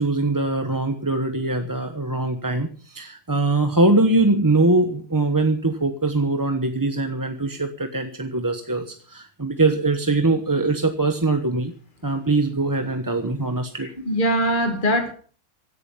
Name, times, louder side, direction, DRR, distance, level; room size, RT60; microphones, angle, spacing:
voice 1, 0.0-11.7 12.0-13.9, right 2 dB, 15° right, 1.0 m, -22 dB
voice 2, 13.8-15.1, equal, 30° left, 2.1 m, -22 dB
16.5 x 11.0 x 5.7 m
omnidirectional pair, 1.6 m